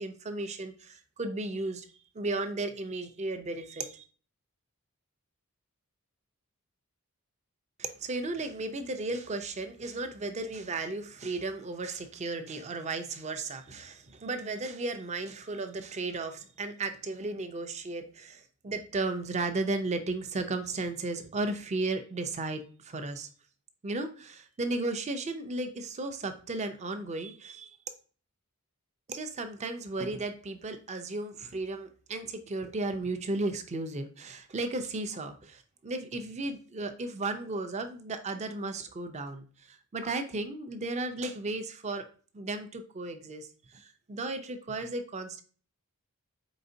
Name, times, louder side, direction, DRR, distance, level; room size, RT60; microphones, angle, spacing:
voice 1, 0.0-1.9 2.1-4.0 7.8-23.3 23.8-27.7 29.1-42.0 42.3-45.4, right 2 dB, 30° right, 8 dB, 0.5 m, -35 dB
4.2 x 3.9 x 2.6 m, 0.40 s
head